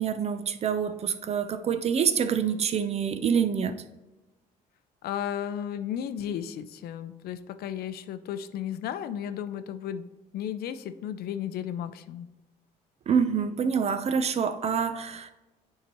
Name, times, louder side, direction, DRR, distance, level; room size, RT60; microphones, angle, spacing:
voice 1, 0.0-3.8 13.1-15.3, right 7 dB, 40° right, 11 dB, 0.5 m, -26 dB
voice 2, 5.0-10.1 10.3-12.3, left 9 dB, 65° left, 12 dB, 0.5 m, -34 dB
9.2 x 4.7 x 3.0 m, 1.1 s
cardioid pair, 110°, 17 cm